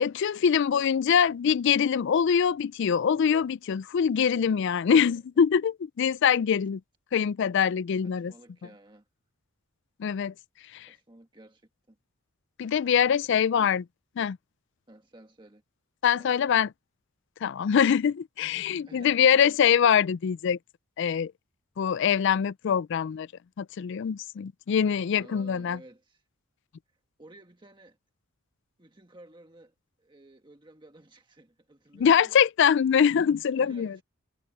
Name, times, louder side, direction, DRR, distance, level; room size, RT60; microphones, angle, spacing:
voice 1, 0.0-6.8 7.1-8.3 10.0-10.3 10.7-10.9 12.6-13.8 14.2-14.4 16.0-16.7 17.4-20.6 21.0-21.3 21.8-23.3 23.6-25.8 32.0-34.0, left 7 dB, 55° left, 0.3 m, -23 dB
voice 2, 8.0-9.1 10.9-12.0 13.3-13.7 14.9-15.6 16.2-16.6 18.8-19.4 25.2-26.2 26.9-28.0 28.8-32.3 33.5-34.0, right 1 dB, 20° right, 1.4 m, -54 dB
head